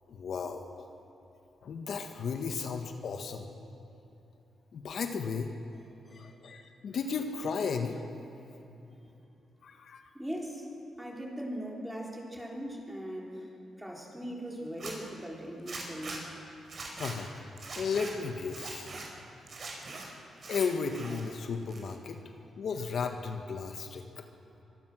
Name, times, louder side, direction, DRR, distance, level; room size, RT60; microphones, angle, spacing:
voice 1, 0.1-0.9 1.6-3.5 4.7-5.5 6.1-8.0 9.6-10.0 17.0-17.4 17.7-18.9 20.5-22.2 22.6-24.2, left 5 dB, 65° left, 5 dB, 1.4 m, -34 dB
voice 2, 10.1-10.7 11.0-16.3, equal, 5° right, -2 dB, 4.0 m, -40 dB
Zipper (clothing), 14.7-14.9 15.7-16.2 16.6-17.1 17.6-18.1 18.5-19.1 19.5-20.0 20.4-21.2 21.5-22.1, right 3 dB, 50° right, 5.0 m, -42 dB
25.0 x 17.5 x 6.3 m, 3.0 s
cardioid pair, 95°, 0 cm